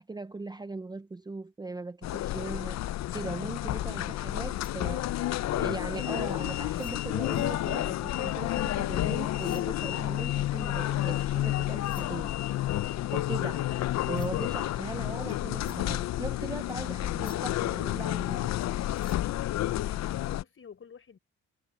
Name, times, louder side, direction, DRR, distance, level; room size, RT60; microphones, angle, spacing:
voice 1, 0.0-2.8 3.1-12.3 13.1-13.7 14.0-18.5, right 3 dB, 15° right, 0.6 m, -39 dB
sound 1, 2.0-20.4, left 14 dB, 60° left, 0.6 m, -30 dB
sound 2, 4.5-8.9 9.3-20.2, left 2 dB, 15° left, 4.4 m, -59 dB
sound 3, 7.3-11.5, left 12 dB, 80° left, 3.7 m, -44 dB
voice 2, 19.4-21.2, left 6 dB, 45° left, 4.8 m, -50 dB
cardioid pair, 90°, 30 cm